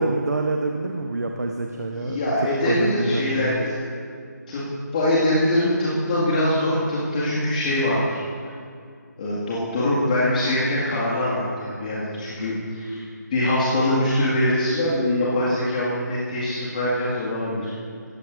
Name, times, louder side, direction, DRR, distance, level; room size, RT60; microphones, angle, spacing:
voice 1, 0.0-3.7, right 2 dB, 55° right, 3 dB, 0.9 m, -27 dB
voice 2, 1.9-3.8 4.5-4.6 4.9-8.2 9.2-13.0 13.3-17.7, left 1 dB, 25° left, -8 dB, 2.0 m, -23 dB
18.0 x 14.5 x 2.6 m, 2.3 s
figure-of-eight pair, 155°, 10 cm